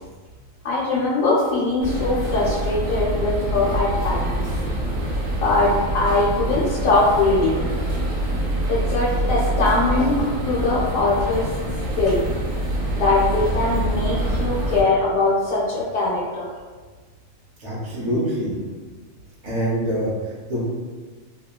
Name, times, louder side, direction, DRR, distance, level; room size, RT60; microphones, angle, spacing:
voice 1, 0.6-4.4 5.4-7.7 8.7-11.5 12.0-12.3 13.0-16.5, left 2 dB, 80° left, -7 dB, 1.0 m, -21 dB
sound 1, 1.8-14.8, right 1 dB, 75° right, 1.1 m, -25 dB
voice 2, 12.7-13.0 17.6-18.6 19.4-20.6, equal, 55° right, -7 dB, 0.4 m, -26 dB
2.9 x 2.2 x 2.2 m, 1.4 s
omnidirectional pair, 1.4 m